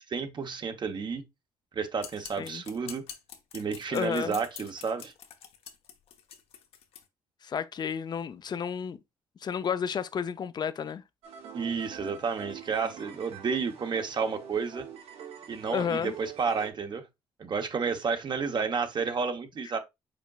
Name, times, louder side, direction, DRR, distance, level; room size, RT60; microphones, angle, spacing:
voice 1, 0.1-1.2 1.7-3.0 3.5-5.1 11.5-14.9 15.5-17.1 17.4-19.8, right 5 dB, 50° right, 0.9 m, -31 dB
sound 1, 2.0-7.0, left 8 dB, 75° left, 0.9 m, -46 dB
voice 2, 3.9-4.4 7.4-9.0 9.4-11.0 15.7-16.1, left 7 dB, 45° left, 0.5 m, -31 dB
sound 2, 11.2-16.7, right 8 dB, 80° right, 1.4 m, -45 dB
5.1 x 4.4 x 2.3 m
supercardioid pair, 70°, 10 cm